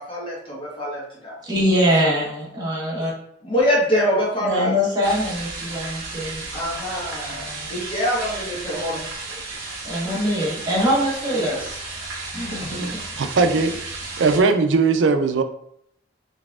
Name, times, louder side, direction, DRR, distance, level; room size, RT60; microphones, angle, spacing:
voice 1, 0.0-1.3 3.4-4.7 6.5-9.0 11.3-11.6 12.3-12.7, equal, 30° left, -5 dB, 1.4 m, -24 dB
voice 2, 1.4-3.1 4.4-6.4 7.3-7.7 9.5-9.6 9.8-11.5 12.3-13.0, equal, 25° right, -6 dB, 1.3 m, -23 dB
sound 1, 5.0-14.4, right 3 dB, 55° right, 1.1 m, -34 dB
voice 3, 12.8-15.4, right 4 dB, 80° right, 8 dB, 0.4 m, -20 dB
4.0 x 3.3 x 2.4 m, 0.72 s
head